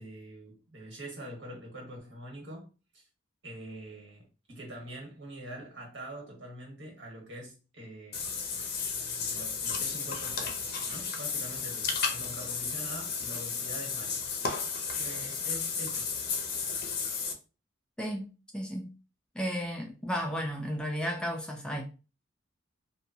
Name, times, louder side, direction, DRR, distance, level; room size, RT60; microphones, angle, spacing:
voice 1, 0.0-2.7 2.9-3.1 3.4-8.3 9.1-14.2 14.9-16.2, right 1 dB, 75° right, 1.3 m, -44 dB
Water / Bathtub (filling or washing), 8.1-17.3, left 5 dB, 55° left, 0.5 m, -33 dB
voice 2, 18.0-18.9 19.3-21.8, equal, 5° left, 0.3 m, -34 dB
2.8 x 2.2 x 2.6 m
head